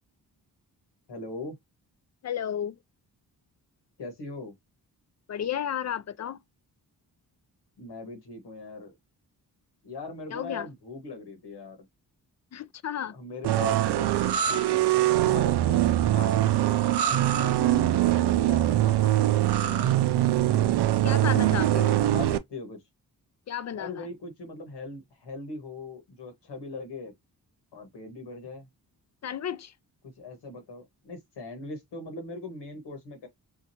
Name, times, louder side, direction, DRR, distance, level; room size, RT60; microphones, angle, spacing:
voice 1, 1.1-1.6 4.0-4.5 7.8-9.0 9.8-11.8 13.1-14.1 15.2-19.9 21.7-22.8 23.7-27.1 27.7-28.7 30.2-33.3, left 3 dB, 90° left, 1.5 m, -40 dB
voice 2, 2.2-2.8 5.3-6.4 10.3-10.7 12.5-13.1 21.0-22.0 23.5-24.1 29.2-29.7, left 9 dB, 45° left, 0.4 m, -32 dB
sound 1, 13.4-22.4, right 13 dB, 80° right, 0.5 m, -23 dB
4.9 x 2.4 x 2.8 m
cardioid pair, 65°, 40 cm